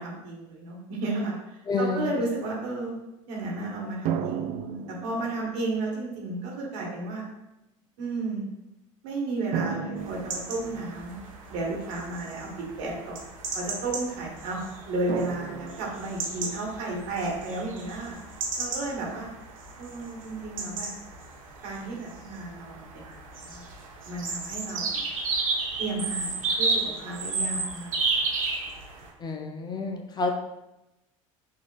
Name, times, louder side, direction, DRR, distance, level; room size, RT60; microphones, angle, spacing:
voice 1, 0.0-1.3 1.8-3.0 3.3-4.5 4.9-7.2 8.0-8.5 9.0-11.2 11.5-12.5 12.8-13.2 13.5-18.2 18.6-19.3 19.8-20.9 21.6-23.7 24.0-25.0 25.8-28.4, right 2 dB, 65° right, -3 dB, 1.3 m, -33 dB
voice 2, 1.7-2.0 29.2-30.3, left 3 dB, 25° left, 3 dB, 0.5 m, -29 dB
sound 1, 4.1-5.8 6.7-6.8 9.5-11.3 15.1-16.4, right 8 dB, 50° right, 0.4 m, -34 dB
sound 2, 10.0-29.1, right 3 dB, 80° right, 0.7 m, -33 dB
5.7 x 2.4 x 2.3 m, 0.93 s
hypercardioid pair, 75°, 17 cm